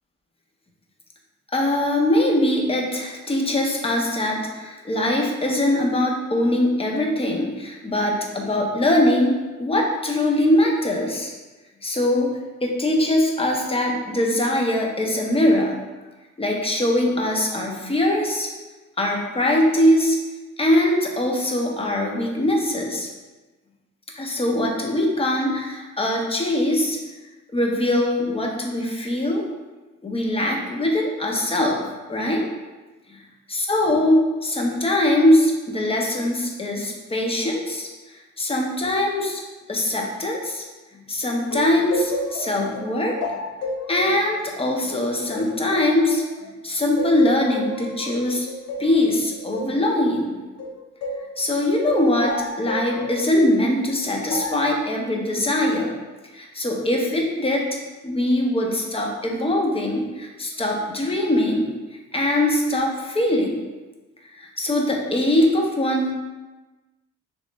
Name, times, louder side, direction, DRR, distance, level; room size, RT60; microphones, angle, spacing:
voice 1, 1.5-11.3 11.8-12.3 12.6-15.8 16.4-18.5 19.0-20.2 20.6-23.1 24.2-27.0 27.5-29.4 30.0-31.8 32.1-32.5 33.1-33.2 33.5-37.9 38.4-39.4 39.7-40.6 41.1-43.2 43.9-46.2 46.6-48.5 48.8-50.4 51.4-55.9 56.3-57.7 58.0-61.7 62.1-63.6 64.3-66.1, left 1 dB, 20° left, 0 dB, 0.7 m, -22 dB
sound 1, 41.5-46.5 47.0-51.3 51.9-53.3 54.3-54.7, left 2 dB, 55° left, 0.5 m, -31 dB
3.1 x 3.0 x 3.2 m, 1.2 s
cardioid pair, 90°, 30 cm